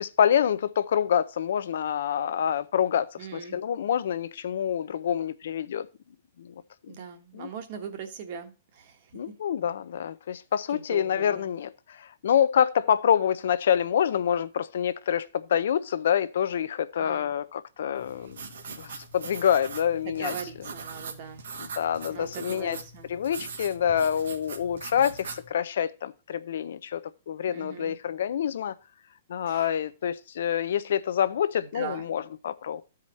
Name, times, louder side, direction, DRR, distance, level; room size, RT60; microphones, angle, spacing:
voice 1, 0.0-5.9 6.4-6.5 7.3-7.5 9.1-11.7 12.2-18.4 18.8-20.3 21.8-22.8 23.1-28.7 29.3-32.8, left 9 dB, 60° left, 0.5 m, -26 dB
voice 2, 3.2-3.6 6.9-9.3 10.3-10.4 10.7-11.5 17.0-17.3 20.0-21.5 22.1-23.2 27.5-28.0 29.5-29.8 31.6-32.1, right 7 dB, 35° right, 1.2 m, -41 dB
sound 1, 17.9-25.5, right 5 dB, 80° right, 1.5 m, -41 dB
13.5 x 5.0 x 4.0 m
hypercardioid pair, 180°, 0 cm